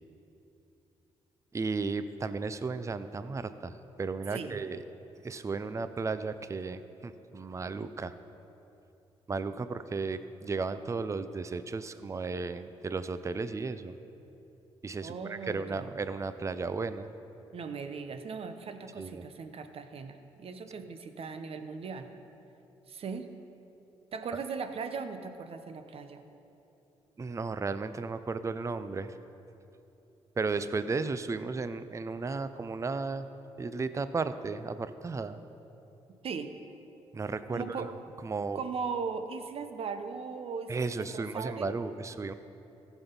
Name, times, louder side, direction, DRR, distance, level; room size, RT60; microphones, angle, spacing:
voice 1, 1.5-4.8 5.2-8.1 9.3-14.0 14.8-17.1 19.0-19.2 27.2-29.1 30.4-33.3 33.6-35.4 37.1-37.9 38.2-38.6 40.7-42.3, right 4 dB, 25° right, 12 dB, 0.5 m, -34 dB
voice 2, 4.3-4.6 15.0-16.0 17.5-22.1 22.9-23.3 24.1-26.2 36.2-36.5 37.5-37.9 38.5-41.7, right 5 dB, 60° right, 8 dB, 0.9 m, -38 dB
15.0 x 6.1 x 5.3 m, 2.9 s
supercardioid pair, 60°, 11 cm